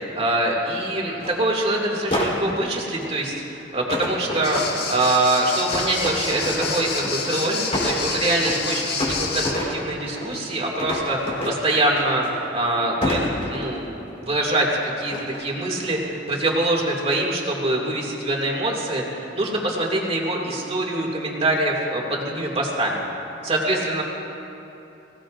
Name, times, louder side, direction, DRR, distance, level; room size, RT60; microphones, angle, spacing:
voice 1, 0.2-13.2 13.5-14.7 15.0-19.0 19.3-23.0 23.4-24.0, right 2 dB, 35° right, -2 dB, 2.4 m, -24 dB
sound 1, 1.2-1.4 2.1-3.2 3.9-5.1 5.7-7.3 7.6-8.7 9.0-10.4 10.8-12.6 13.0-14.0 15.1-15.5 15.9-16.3, left 1 dB, 35° left, 3.9 m, -28 dB
sound 2, 4.4-9.5, left 4 dB, 60° left, 1.6 m, -29 dB
23.5 x 17.5 x 2.6 m, 2.9 s
head